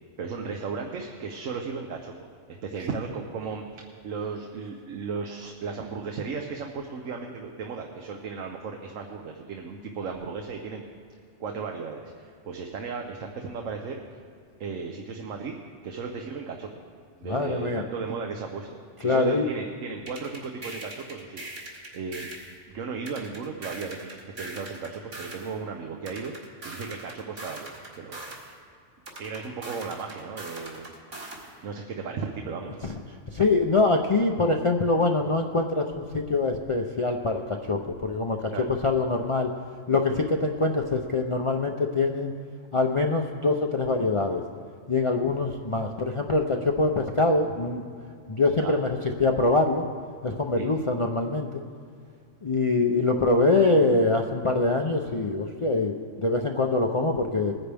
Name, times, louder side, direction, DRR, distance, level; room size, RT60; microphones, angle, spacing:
voice 1, 0.2-2.1 2.5-10.8 11.4-14.0 14.6-15.6 15.8-16.7 17.2-22.3 22.7-26.3 26.6-28.4 29.2-31.0 31.6-33.0 38.5-38.7 40.1-40.2 48.5-48.7 50.6-50.7, right 5 dB, 85° right, 2 dB, 1.2 m, -35 dB
voice 2, 17.2-17.8 19.0-19.5 33.3-38.5 38.8-39.5 39.9-42.3 42.7-44.4 44.9-47.8 48.3-48.9 49.2-49.9 50.2-51.6 52.4-57.5, left 3 dB, 40° left, 2 dB, 0.4 m, -24 dB
sound 1, 20.1-22.5 23.1-25.5 26.1-28.5 29.0-31.5, right 2 dB, 70° right, 2.4 m, -41 dB
20.5 x 9.9 x 3.4 m, 2.3 s
omnidirectional pair, 1.3 m